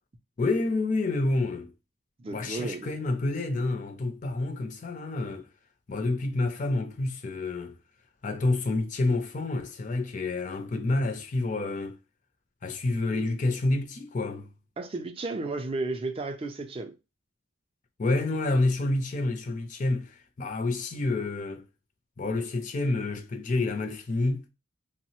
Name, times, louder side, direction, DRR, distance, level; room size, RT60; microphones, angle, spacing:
voice 1, 0.4-1.7 2.3-5.5 5.9-7.7 8.2-12.0 12.6-14.5 18.0-21.6 22.2-24.5, left 2 dB, 40° left, 0.4 m, -28 dB
voice 2, 2.2-2.9 14.8-17.0, right 3 dB, 25° right, 0.4 m, -33 dB
3.0 x 2.0 x 2.9 m
head